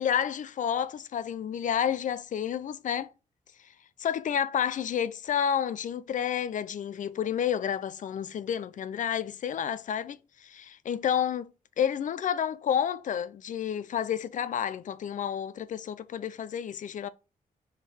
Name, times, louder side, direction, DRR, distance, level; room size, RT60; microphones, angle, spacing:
voice 1, 0.0-3.1 4.0-11.5 11.8-17.1, left 9 dB, 60° left, 0.4 m, -30 dB
4.3 x 3.6 x 3.3 m
cardioid pair, 105°, 15 cm